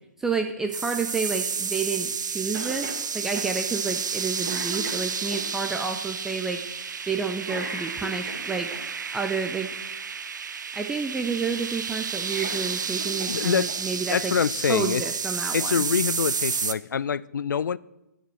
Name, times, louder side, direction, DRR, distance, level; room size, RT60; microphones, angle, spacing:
voice 1, 0.2-2.9 3.1-6.6 7.1-8.7 9.1-9.7 10.7-14.3 14.7-15.7, right 5 dB, 5° right, 0.3 m, -30 dB
sound 1, 0.7-16.7, right 6 dB, 80° right, 0.6 m, -31 dB
Cough, 2.5-3.0 3.4-3.5 4.0-4.2 4.4-5.4 7.4-8.8 12.1-13.4 13.7-13.8 14.9-15.0, right 2 dB, 20° right, 2.4 m, -37 dB
voice 2, 13.3-13.7 14.1-15.0 15.5-17.8, left 7 dB, 85° left, 0.4 m, -25 dB
9.9 x 5.1 x 7.5 m
hypercardioid pair, 155°, 10 cm